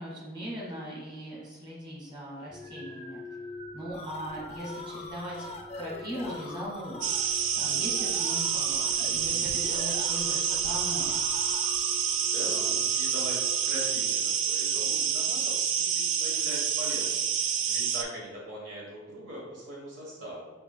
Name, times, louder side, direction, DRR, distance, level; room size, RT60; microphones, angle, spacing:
voice 1, 0.0-3.2 3.7-5.5 5.7-11.1, equal, 25° right, -6 dB, 1.4 m, -39 dB
sound 1, 2.5-14.5, left 2 dB, 40° right, 0.9 m, -46 dB
sound 2, 3.6-12.2, left 2 dB, 35° left, 0.4 m, -44 dB
sound 3, 7.0-18.0, right 8 dB, 90° right, 0.4 m, -28 dB
voice 2, 12.2-20.5, equal, 75° right, -4 dB, 1.1 m, -41 dB
6.7 x 2.6 x 2.2 m, 1.3 s
head